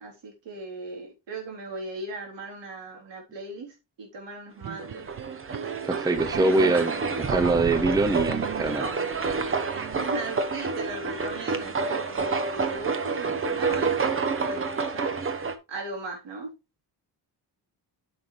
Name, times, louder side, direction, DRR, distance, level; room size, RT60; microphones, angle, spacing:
voice 1, 0.0-5.0 9.9-14.7 14.9-15.1 15.7-16.5, right 2 dB, 75° right, 3.6 m, -38 dB
sound 1, 4.6-7.4 8.3-10.2, right 11 dB, 50° right, 0.6 m, -40 dB
sound 2, 4.8-15.6, right 4 dB, 30° right, 0.9 m, -29 dB
voice 2, 5.8-8.9, right 2 dB, 10° right, 0.7 m, -24 dB
9.5 x 6.1 x 3.2 m
cardioid pair, 130°, 43 cm